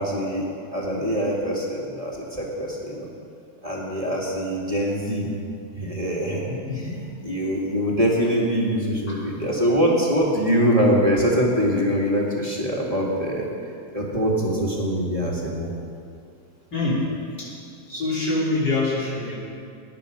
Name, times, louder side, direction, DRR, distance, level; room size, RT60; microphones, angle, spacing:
voice 1, 0.0-3.1 3.6-5.3 5.7-6.4 7.2-13.5 13.9-15.7 19.3-19.4, equal, 20° right, -4 dB, 2.2 m, -23 dB
voice 2, 6.5-6.9 9.1-9.2 16.7-17.1 17.4-17.5 17.9-19.3, left 2 dB, 85° left, -6 dB, 3.9 m, -25 dB
18.0 x 10.5 x 5.1 m, 2.4 s
omnidirectional pair, 1.8 m